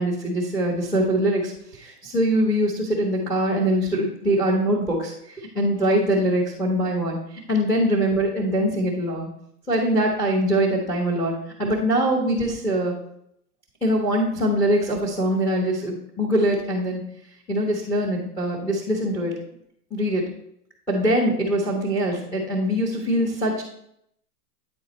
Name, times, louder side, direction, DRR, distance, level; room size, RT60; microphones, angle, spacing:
voice 1, 0.0-1.5 1.8-7.2 7.5-9.3 9.7-11.3 11.6-12.9 13.8-17.0 17.5-19.3 19.9-20.2 20.9-23.6, right 1 dB, 5° left, -5 dB, 0.9 m, -23 dB
9.0 x 4.0 x 4.1 m, 0.71 s
hypercardioid pair, 155°, 47 cm